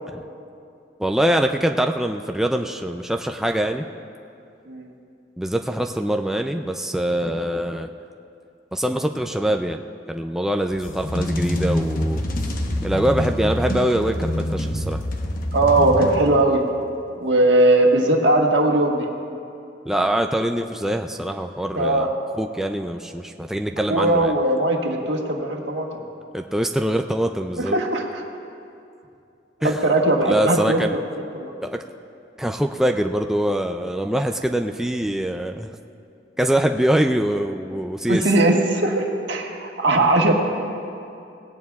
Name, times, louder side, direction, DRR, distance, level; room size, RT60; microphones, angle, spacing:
voice 1, 1.0-3.9 5.4-7.9 8.7-9.8 10.1-12.2 12.8-15.0 19.9-22.1 22.3-24.3 26.3-27.8 29.6-29.8 30.3-30.9 31.6-31.8 32.4-35.7 36.4-38.2, right 1 dB, 5° right, 3 dB, 0.3 m, -23 dB
sound 1, 10.7-16.7, left 1 dB, 50° left, 1.0 m, -26 dB
voice 2, 15.5-16.6 17.2-19.1 21.7-22.1 23.9-26.0 27.6-28.2 29.6-31.1 31.3-31.5 38.1-40.3, right 2 dB, 75° right, 1 dB, 1.5 m, -19 dB
18.5 x 17.0 x 2.3 m, 2.5 s
head